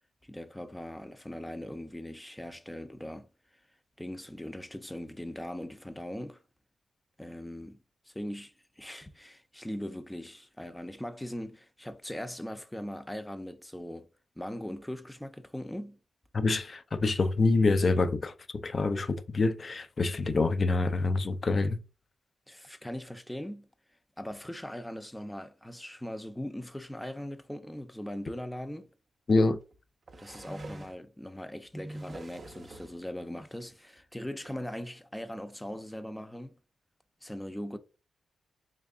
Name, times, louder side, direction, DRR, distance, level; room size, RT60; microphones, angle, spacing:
voice 1, 0.2-3.3 4.0-6.4 7.2-7.8 8.1-14.1 14.4-16.0 22.5-23.7 24.2-28.9 30.2-36.6 37.2-37.8, left 1 dB, 10° left, 0.6 m, -40 dB
voice 2, 16.3-21.8 29.3-29.6, left 3 dB, 50° left, 0.5 m, -26 dB
sound 1, 28.6-28.7 29.7-31.0 31.6-33.0 34.0-34.1 34.4-34.6, right 2 dB, 50° right, 0.5 m, -48 dB
3.7 x 3.2 x 2.4 m
supercardioid pair, 50°, 0 cm